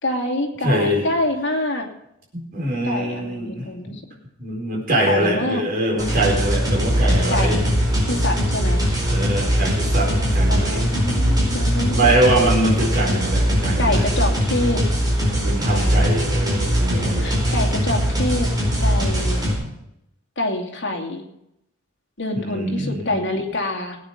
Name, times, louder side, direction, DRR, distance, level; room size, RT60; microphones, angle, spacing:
voice 1, 0.0-1.9 2.8-4.0 5.0-5.6 7.3-7.6 8.1-8.8 10.5-12.1 13.8-14.8 15.7-16.2 17.2-18.5 18.8-19.4 20.4-21.2 22.2-24.0, left 1 dB, 60° left, 1 dB, 2.5 m, -26 dB
voice 2, 0.6-1.0 2.3-4.0 4.4-7.6 9.1-10.9 11.9-14.1 15.3-17.3 22.5-23.2, right 1 dB, 50° right, -3 dB, 4.6 m, -23 dB
sound 1, 6.0-19.5, equal, 20° right, 4.8 m, -20 dB
18.5 x 9.3 x 5.2 m, 0.81 s
head